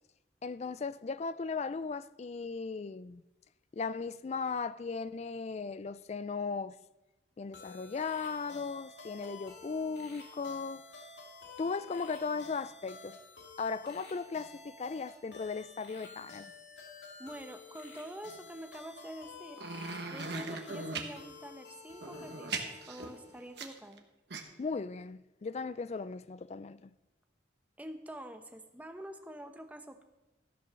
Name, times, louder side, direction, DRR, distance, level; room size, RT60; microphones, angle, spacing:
voice 1, 0.4-3.2 3.7-6.8 7.4-10.9 11.6-13.2 13.6-16.5 24.6-26.9, left 4 dB, 35° left, 0.3 m, -37 dB
sound 1, 7.5-23.7, left 4 dB, 70° left, 2.3 m, -51 dB
voice 2, 17.2-19.6 20.1-24.1 27.8-30.0, right 1 dB, 10° right, 0.8 m, -46 dB
sound 2, 19.6-21.1 22.0-24.0 24.3-24.4, right 4 dB, 60° right, 1.3 m, -39 dB
13.5 x 7.0 x 6.3 m
head